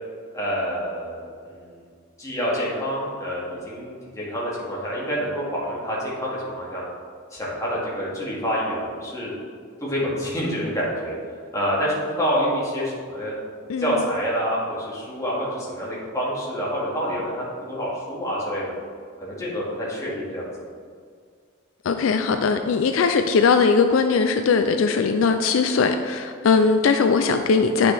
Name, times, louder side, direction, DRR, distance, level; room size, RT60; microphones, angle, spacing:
voice 1, 0.3-1.8 2.2-6.9 7.3-9.3 9.8-11.2 11.5-13.3 13.8-18.7 19.2-20.5, equal, 15° left, -7 dB, 2.0 m, -27 dB
voice 2, 21.8-27.9, left 5 dB, 80° left, 7 dB, 0.4 m, -20 dB
9.3 x 5.9 x 3.4 m, 2.1 s
head